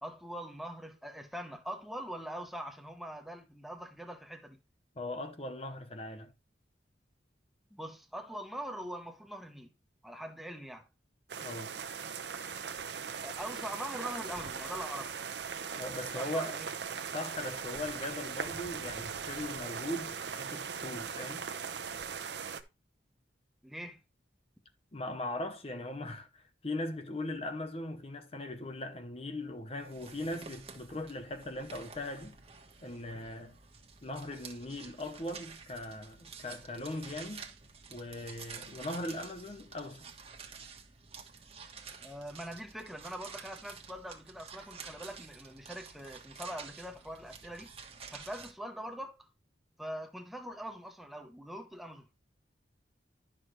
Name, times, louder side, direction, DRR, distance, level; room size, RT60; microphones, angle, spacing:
voice 1, 0.0-4.6 7.7-9.7 10.0-10.9 13.2-15.2 16.1-16.7 23.6-24.0 42.0-47.7 48.1-49.3 49.8-52.1, equal, ahead, 1.0 m, -43 dB
voice 2, 5.0-6.3 11.4-11.8 15.8-16.6 17.1-21.5 24.9-32.4 32.8-33.6 34.0-37.4 37.9-40.1, left 1 dB, 35° left, 0.9 m, -39 dB
sound 1, 11.3-22.6, right 6 dB, 70° right, 0.8 m, -39 dB
sound 2, 29.8-48.5, right 5 dB, 35° right, 1.3 m, -50 dB
11.5 x 6.1 x 3.2 m
head